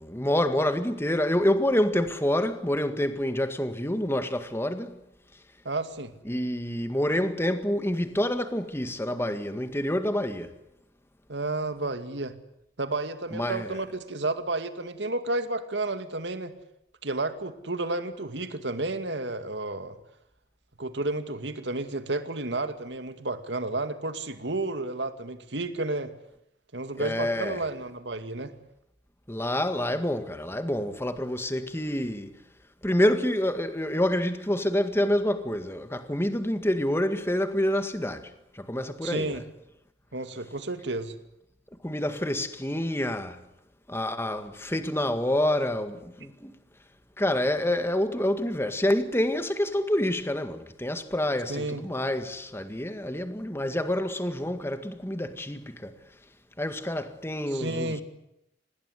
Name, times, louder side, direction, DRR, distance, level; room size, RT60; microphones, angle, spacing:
voice 1, 0.0-5.0 6.3-10.5 13.3-13.8 27.0-27.6 29.3-32.4 32.8-39.4 41.8-43.4 43.9-46.6 47.2-56.0 56.6-58.0, left 1 dB, 15° left, 1.9 m, -27 dB
voice 2, 5.6-6.1 11.3-12.3 12.8-16.5 17.0-20.0 20.8-26.1 26.7-28.5 39.0-39.4 40.1-41.2 51.5-51.8 57.5-58.0, right 2 dB, 75° right, 2.3 m, -31 dB
26.5 x 20.0 x 8.2 m
head